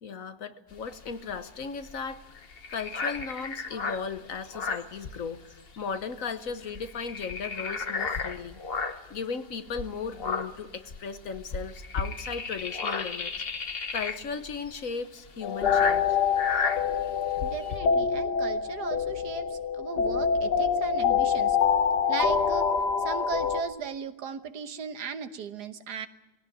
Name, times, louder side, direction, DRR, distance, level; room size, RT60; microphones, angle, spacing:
voice 1, 0.0-2.2 2.7-5.5 5.8-8.6 8.9-13.3 13.9-16.1, left 5 dB, 55° left, 10 dB, 1.4 m, -36 dB
sound 1, 0.7-5.7 5.9-6.1 6.5-9.2 9.7-17.8, left 4 dB, 40° left, 1.2 m, -34 dB
sound 2, 15.4-23.6, left 6 dB, 90° left, 1.7 m, -26 dB
voice 2, 17.4-21.6 22.1-22.7 23.0-26.1, right 6 dB, 80° right, 10 dB, 1.6 m, -37 dB
20.5 x 17.0 x 9.2 m, 1.1 s
omnidirectional pair, 1.7 m